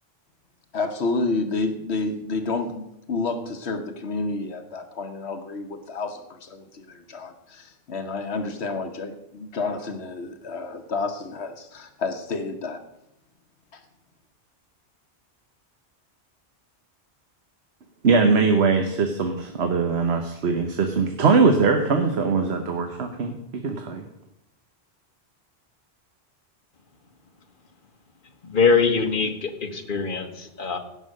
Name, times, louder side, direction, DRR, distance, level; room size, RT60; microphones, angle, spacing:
voice 1, 0.7-12.8 13.7-13.8, left 3 dB, 75° left, 7 dB, 1.2 m, -30 dB
voice 2, 18.0-24.1, right 4 dB, 70° right, 5 dB, 1.2 m, -21 dB
voice 3, 28.4-30.8, left 5 dB, 50° left, 6 dB, 1.4 m, -23 dB
16.5 x 5.8 x 6.4 m, 0.84 s
omnidirectional pair, 1.1 m